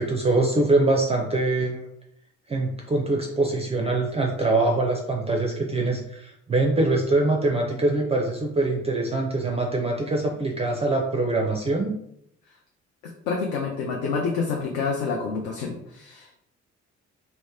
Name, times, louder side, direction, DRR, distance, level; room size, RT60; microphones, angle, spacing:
voice 1, 0.0-1.9 2.5-11.9, right 2 dB, 20° right, 1 dB, 0.4 m, -23 dB
voice 2, 13.3-16.4, left 4 dB, 60° left, 0 dB, 0.6 m, -28 dB
2.9 x 2.1 x 3.5 m, 0.75 s
figure-of-eight pair, 45°, 36 cm